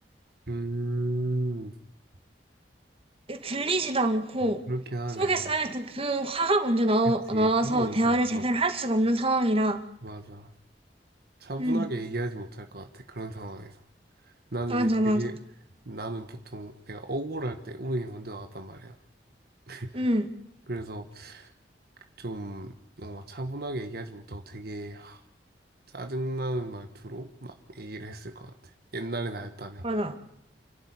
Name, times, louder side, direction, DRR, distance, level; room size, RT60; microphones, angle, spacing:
voice 1, 0.5-1.7 4.4-5.5 7.3-8.5 10.0-10.5 11.4-13.8 14.2-15.4 15.8-19.0 19.7-20.0 20.7-21.5 22.2-25.2 25.9-29.9, right 1 dB, 60° right, 1.5 m, -35 dB
voice 2, 3.3-4.6 5.2-9.8 11.6-11.9 14.7-15.2 19.9-20.3 29.8-30.2, right 1 dB, 35° right, 2.2 m, -25 dB
29.5 x 12.0 x 9.9 m
head